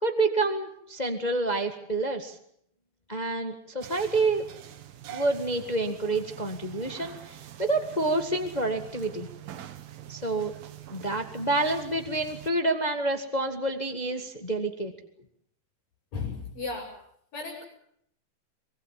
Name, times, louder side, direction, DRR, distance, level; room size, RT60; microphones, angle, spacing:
voice 1, 0.0-2.4 3.1-4.4 5.1-9.3 10.1-10.5 10.9-14.9, right 2 dB, 40° left, 5 dB, 0.6 m, -28 dB
sound 1, 3.8-12.5, right 11 dB, 80° right, 3.4 m, -44 dB
voice 2, 16.1-16.9 17.3-17.6, left 4 dB, 70° left, -3 dB, 7.9 m, -34 dB
24.5 x 22.0 x 7.5 m, 0.69 s
omnidirectional pair, 4.2 m